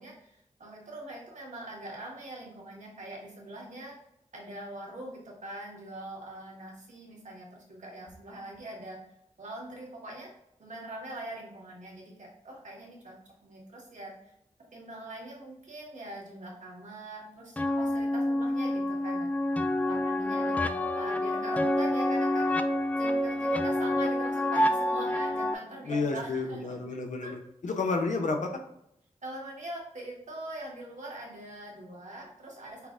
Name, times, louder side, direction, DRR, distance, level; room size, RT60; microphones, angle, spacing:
voice 1, 0.0-3.9 4.3-9.0 9.4-10.3 10.6-13.2 13.4-14.1 14.7-19.3 19.8-22.5 22.9-26.7 27.2-27.3 29.2-32.8, right 1 dB, 75° right, -3 dB, 1.5 m, -42 dB
sound 1, 17.6-25.5, left 1 dB, 10° left, 0.3 m, -28 dB
voice 2, 25.8-28.5, left 3 dB, 80° left, 3 dB, 0.7 m, -31 dB
5.7 x 2.1 x 3.6 m, 0.77 s
wide cardioid pair, 60°, 13 cm